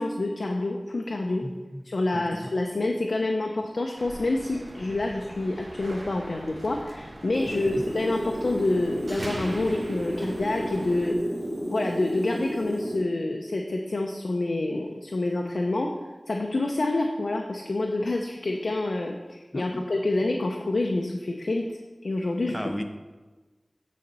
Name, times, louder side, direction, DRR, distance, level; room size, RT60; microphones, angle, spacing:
voice 1, 0.0-1.4 1.8-11.2 11.7-15.9 16.3-22.6, left 2 dB, 90° left, 1 dB, 0.5 m, -27 dB
voice 2, 1.4-1.8 2.1-2.5 7.5-7.8 19.5-19.9 22.5-22.8, equal, 5° left, 6 dB, 0.7 m, -36 dB
sound 1, 4.0-11.1, right 1 dB, 65° right, 1.1 m, -42 dB
sound 2, 7.3-13.0, equal, 40° right, 2.5 m, -32 dB
9.3 x 4.1 x 5.4 m, 1.3 s
wide cardioid pair, 50°, 0 cm